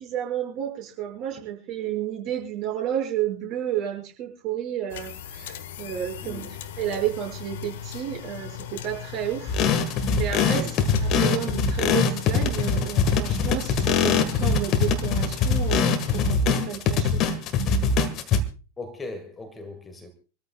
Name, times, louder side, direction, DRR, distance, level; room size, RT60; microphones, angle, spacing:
voice 1, 0.0-9.6 9.9-17.2, right 11 dB, 40° right, 6.6 m, -31 dB
sound 1, 4.9-16.3, left 10 dB, 55° left, 1.3 m, -38 dB
voice 2, 6.2-6.6 10.5-10.8 18.8-20.1, left 2 dB, 15° left, 1.9 m, -39 dB
sound 2, 9.5-18.4, left 5 dB, 35° left, 1.7 m, -22 dB
27.0 x 13.5 x 2.4 m
figure-of-eight pair, 90°, 0 cm